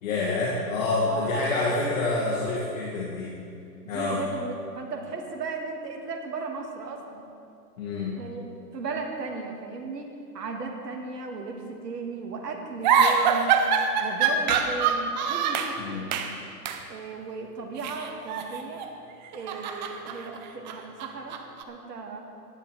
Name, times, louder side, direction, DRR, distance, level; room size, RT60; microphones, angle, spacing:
voice 1, 0.0-3.3 3.9-4.2 7.8-8.1 15.8-16.0, left 3 dB, 50° left, -5 dB, 2.3 m, -27 dB
voice 2, 1.1-1.5 3.8-7.3 8.2-8.4 8.7-13.6 14.0-16.3 16.9-18.8 19.3-21.4 21.7-22.2, right 4 dB, 70° right, 1 dB, 2.1 m, -36 dB
sound 1, 12.8-15.8 16.1-16.4 16.6-16.8 17.8-18.9 19.2-21.6, right 6 dB, 30° right, 0.7 m, -25 dB
17.0 x 11.5 x 3.3 m, 2.5 s
hypercardioid pair, 130°, 50 cm